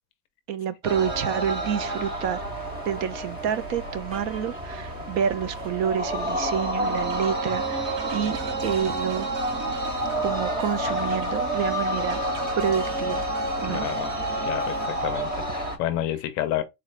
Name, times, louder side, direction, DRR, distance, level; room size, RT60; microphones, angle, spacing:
voice 1, 0.5-9.3 10.2-12.2 12.6-13.2 13.6-13.8, right 8 dB, 60° right, 0.6 m, -28 dB
sound 1, 0.8-15.8, right 1 dB, 20° right, 0.5 m, -29 dB
sound 2, 6.8-14.9, right 7 dB, 90° right, 0.8 m, -39 dB
voice 2, 13.7-14.1 14.4-16.6, left 12 dB, 45° left, 0.5 m, -30 dB
4.0 x 2.4 x 3.1 m
cardioid pair, 175°, 45 cm